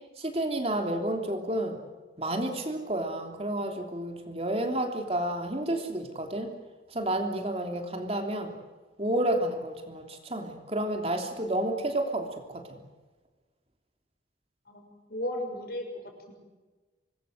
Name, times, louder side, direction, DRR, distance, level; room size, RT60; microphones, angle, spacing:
voice 1, 0.2-1.8 2.2-6.5 6.9-8.5 9.0-12.8, right 1 dB, 35° right, 4 dB, 3.2 m, -30 dB
voice 2, 14.7-16.3, left 1 dB, 55° left, 3 dB, 6.5 m, -36 dB
26.0 x 21.0 x 7.9 m, 1.3 s
head